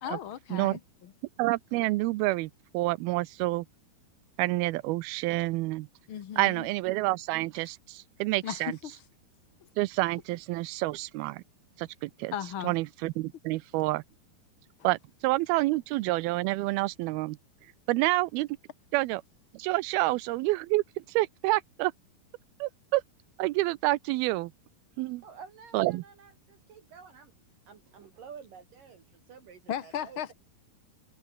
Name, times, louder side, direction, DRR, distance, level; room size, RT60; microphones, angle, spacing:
voice 1, 0.0-1.1 6.1-6.7 8.4-9.0 12.3-12.7 29.7-30.3, left 10 dB, 85° left, 1.1 m, -36 dB
voice 2, 1.4-3.7 4.4-5.9 6.4-8.8 9.8-11.4 11.8-12.3 12.6-14.0 14.8-17.4 17.9-18.5 18.9-19.2 19.5-20.8 21.1-21.9 22.6-23.0 23.4-24.5 25.0-25.2 25.7-26.0, right 20 dB, 85° right, 2.5 m, -28 dB
voice 3, 25.2-27.3 27.7-30.3, right 6 dB, 60° right, 4.2 m, -50 dB
omnidirectional pair, 4.5 m